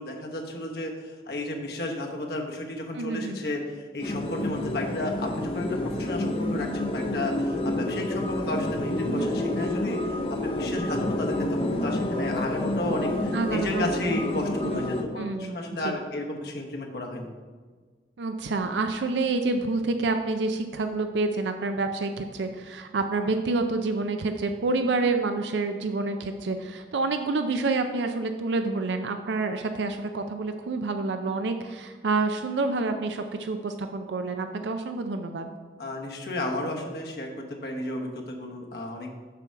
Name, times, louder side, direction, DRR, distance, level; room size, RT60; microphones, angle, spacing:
voice 1, 0.0-17.3 35.8-37.3 37.6-39.1, left 1 dB, 65° left, 1 dB, 1.0 m, -33 dB
voice 2, 2.9-3.4 9.1-9.3 13.3-13.9 14.6-14.8 15.2-15.6 15.8-15.9 18.2-35.5, right 3 dB, 90° right, 6 dB, 0.5 m, -28 dB
sound 1, 4.0-15.0, left 1 dB, 30° left, 0.6 m, -29 dB
6.9 x 6.1 x 4.5 m, 1.4 s
head